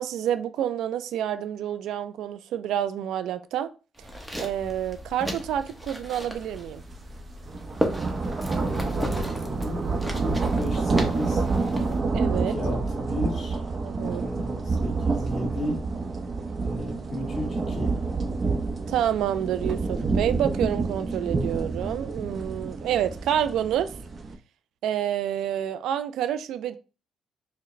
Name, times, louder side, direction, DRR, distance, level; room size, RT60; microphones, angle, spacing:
voice 1, 0.0-3.7 4.4-6.8 12.1-12.5 13.8-14.2 18.9-23.9 24.8-26.8, right 10 dB, 80° right, 0.3 m, -28 dB
sound 1, 4.0-12.0, equal, 5° right, 0.9 m, -35 dB
sound 2, 6.5-6.7 7.1-24.3, right 3 dB, 45° right, 0.6 m, -28 dB
voice 2, 8.6-9.8 10.2-11.4 12.3-13.6 14.0-15.8 16.6-17.9, left 1 dB, 45° left, 1.8 m, -34 dB
4.6 x 2.1 x 3.1 m
cardioid pair, 90°, 0 cm